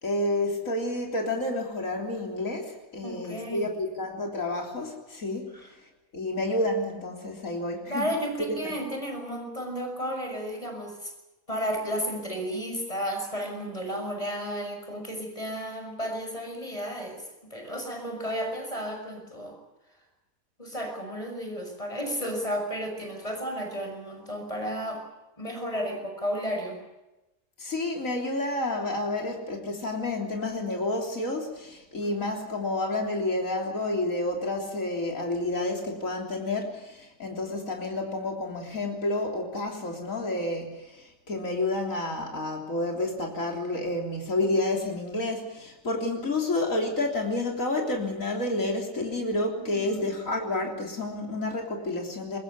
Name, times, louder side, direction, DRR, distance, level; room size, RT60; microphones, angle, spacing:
voice 1, 0.0-5.6 6.1-8.1 8.5-8.7 27.6-52.4, left 2 dB, 75° left, 1 dB, 3.9 m, -30 dB
voice 2, 3.0-3.7 5.5-5.7 7.9-11.1 11.5-19.6 20.6-25.0 25.4-26.8 32.0-32.2 49.7-50.1, equal, 25° left, 4 dB, 6.2 m, -33 dB
23.0 x 20.5 x 8.4 m, 1.0 s
omnidirectional pair, 1.4 m